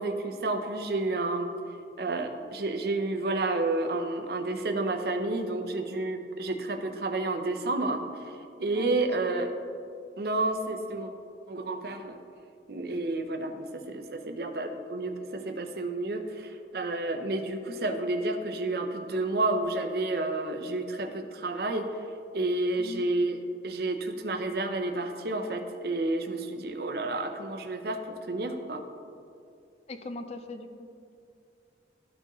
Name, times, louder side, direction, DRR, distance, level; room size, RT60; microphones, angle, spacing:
voice 1, 0.0-1.5 2.0-8.0 8.6-9.5 10.2-11.1 11.5-12.2 12.7-21.9 22.3-23.4 23.6-28.8, right 2 dB, 60° right, 6 dB, 0.6 m, -30 dB
voice 2, 8.7-9.5 22.8-23.1 29.9-30.9, left 2 dB, 35° left, 8 dB, 0.4 m, -40 dB
13.0 x 4.5 x 3.0 m, 2.4 s
head